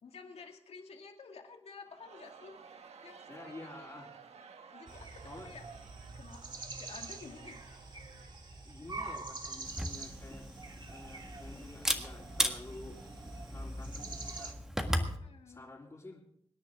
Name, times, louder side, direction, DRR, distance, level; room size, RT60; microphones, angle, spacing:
voice 1, 0.0-2.5 3.0-3.7 4.7-5.6 6.1-7.6 9.0-9.6 15.2-15.6, left 5 dB, 70° left, 3 dB, 2.3 m, -52 dB
Crowd, 1.8-9.1, right 6 dB, 75° right, 1.3 m, -54 dB
voice 2, 3.3-4.1 4.5-4.7 5.2-5.5 8.6-10.5 10.9-13.0 13.5-15.2 15.5-16.2, left 2 dB, 30° left, -7 dB, 3.5 m, -50 dB
sound 1, 4.9-14.5, right 3 dB, 45° right, 1.7 m, -46 dB
Camera, 9.6-15.2, equal, 5° right, 1.7 m, -37 dB
25.0 x 10.0 x 3.6 m, 0.70 s
wide cardioid pair, 105°, 11 cm